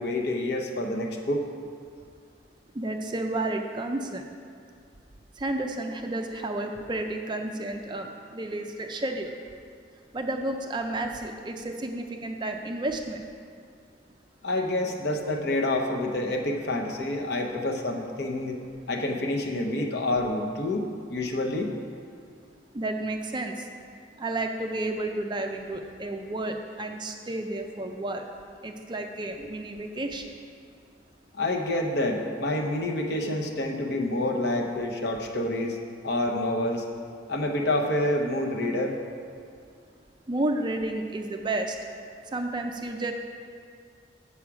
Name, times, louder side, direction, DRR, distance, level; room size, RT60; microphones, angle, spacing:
voice 1, 0.0-1.4 14.4-18.6 18.9-21.7 31.3-35.8 36.0-36.8 37.3-39.0, left 1 dB, 55° left, 2 dB, 0.8 m, -28 dB
voice 2, 2.7-4.2 5.4-9.3 10.1-13.3 22.7-23.7 24.2-28.3 28.6-30.2 40.3-41.8 42.3-43.1, right 2 dB, 25° right, 4 dB, 0.4 m, -31 dB
7.3 x 7.0 x 4.8 m, 2.3 s
head